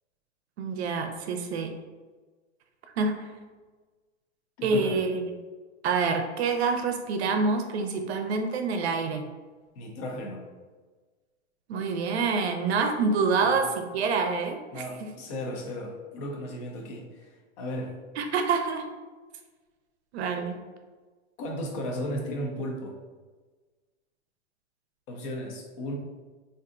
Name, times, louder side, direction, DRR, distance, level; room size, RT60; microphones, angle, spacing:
voice 1, 0.6-1.7 3.0-3.3 4.6-5.2 5.8-9.2 11.7-15.1 18.2-18.8 20.1-20.6, right 4 dB, 60° right, 5 dB, 0.6 m, -27 dB
voice 2, 4.6-5.0 9.8-10.4 13.4-13.6 14.7-17.9 21.4-23.0 25.1-25.9, equal, 30° left, 1 dB, 0.5 m, -35 dB
3.4 x 2.6 x 2.4 m, 1.3 s
hypercardioid pair, 140°, 36 cm